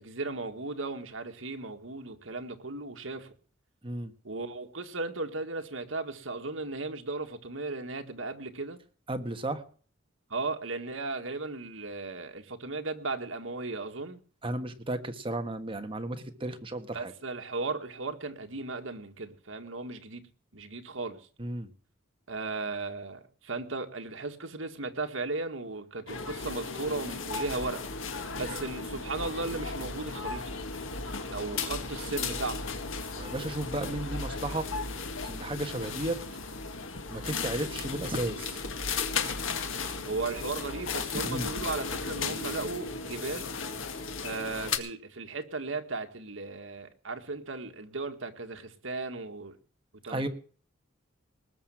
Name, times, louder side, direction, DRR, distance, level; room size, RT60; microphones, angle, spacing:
voice 1, 0.0-3.3 4.2-8.8 10.3-14.2 16.9-20.2 20.5-21.2 22.3-27.8 28.4-30.4 31.3-32.7 40.0-43.5 44.2-49.6 50.0-50.3, right 3 dB, 75° right, 6 dB, 1.9 m, -36 dB
voice 2, 9.1-9.6 14.4-17.1 21.4-21.7 33.1-34.7 35.2-36.2 37.1-38.6 41.2-41.5 50.1-50.3, right 1 dB, 25° right, 7 dB, 1.6 m, -34 dB
sound 1, 26.1-44.8, left 4 dB, 75° left, 1.9 m, -35 dB
19.5 x 6.7 x 7.5 m, 0.42 s
head